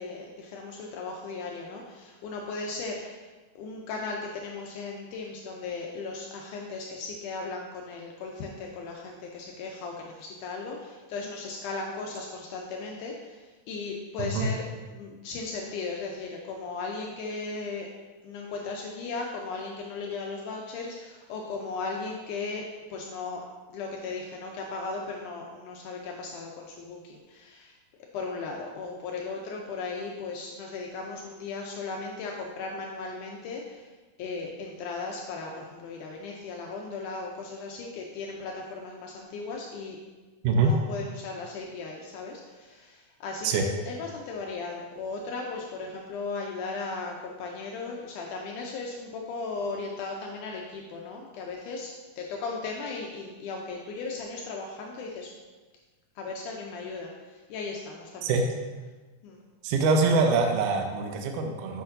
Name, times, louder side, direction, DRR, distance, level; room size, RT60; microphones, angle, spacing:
voice 1, 0.0-3.3 3.5-17.9 18.2-22.6 22.9-23.4 23.7-27.7 28.1-33.9 34.2-40.0 40.5-55.3 56.1-58.4 59.2-59.4, left 4 dB, 85° left, 0 dB, 1.8 m, -37 dB
voice 2, 59.6-61.8, right 4 dB, 80° right, 3 dB, 1.9 m, -24 dB
8.2 x 5.9 x 2.6 m, 1.3 s
omnidirectional pair, 4.2 m